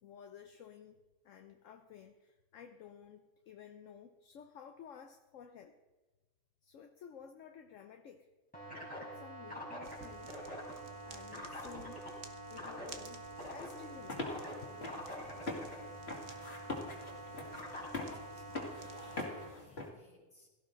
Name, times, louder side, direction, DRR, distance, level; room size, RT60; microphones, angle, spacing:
voice 1, 0.0-0.9 1.2-5.7 6.6-8.3 8.7-10.3 11.0-12.0 12.5-13.2 13.5-14.4, left 8 dB, 65° left, 6 dB, 1.1 m, -53 dB
sound 1, 8.5-19.5, right 1 dB, 5° left, 4.2 m, -46 dB
sound 2, 9.8-19.3, right 5 dB, 75° right, 1.6 m, -57 dB
sound 3, 13.9-19.9, left 2 dB, 45° left, 2.5 m, -43 dB
voice 2, 15.8-16.1 18.0-19.3 19.6-20.5, left 1 dB, 25° left, -3 dB, 3.9 m, -62 dB
17.0 x 13.5 x 3.9 m, 1.2 s
omnidirectional pair, 1.5 m